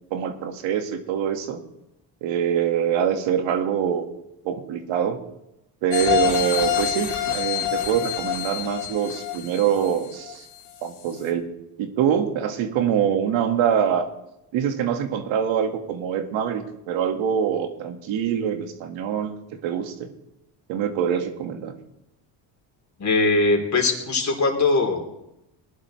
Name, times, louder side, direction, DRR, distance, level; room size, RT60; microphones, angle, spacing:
voice 1, 0.1-1.6 2.2-4.1 4.4-5.2 5.8-10.5 10.8-11.5 11.8-14.1 14.5-19.4 19.6-20.1 20.7-21.7, right 8 dB, 80° right, 6 dB, 1.8 m, -24 dB
sound 1, 5.9-10.7 11.1-11.2, left 10 dB, 85° left, 3.7 m, -26 dB
voice 2, 23.0-25.0, left 3 dB, 35° left, 3 dB, 3.3 m, -21 dB
19.0 x 11.0 x 3.2 m, 0.86 s
cardioid pair, 90°, 46 cm